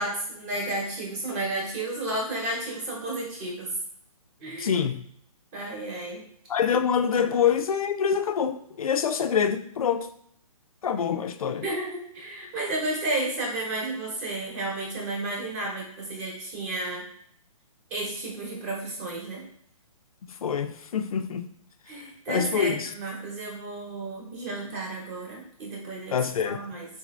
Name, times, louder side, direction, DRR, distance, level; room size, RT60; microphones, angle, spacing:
voice 1, 0.0-3.7 4.4-4.8 5.5-6.2 7.2-7.3 11.4-17.0 17.9-19.4 21.9-26.2 26.4-26.9, right 2 dB, 20° right, -2 dB, 1.0 m, -32 dB
voice 2, 4.6-5.0 6.5-10.1 10.8-11.7 20.4-21.5 22.3-22.9 26.1-26.6, left 7 dB, 70° left, 9 dB, 0.4 m, -25 dB
3.9 x 2.6 x 3.0 m, 0.65 s
hypercardioid pair, 160°, 19 cm